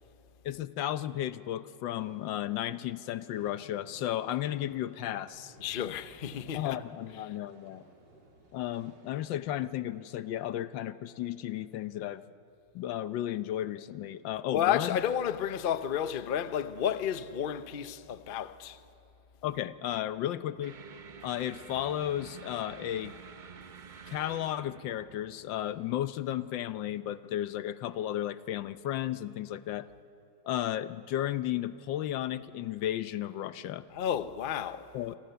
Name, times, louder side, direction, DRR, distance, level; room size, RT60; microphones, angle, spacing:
voice 1, 0.4-5.6 6.5-7.8 8.5-12.2 12.7-15.0 19.4-20.8 21.2-23.1 24.1-29.9 30.4-33.9 34.9-35.2, left 12 dB, 90° left, 1.5 m, -34 dB
sound 1, 1.8-9.4, right 2 dB, 75° right, 3.5 m, -58 dB
voice 2, 5.6-6.8 14.5-18.8 33.9-34.9, left 9 dB, 55° left, 0.6 m, -31 dB
sound 2, 20.6-27.1, right 6 dB, 45° right, 0.6 m, -50 dB
28.5 x 25.5 x 6.9 m
omnidirectional pair, 2.0 m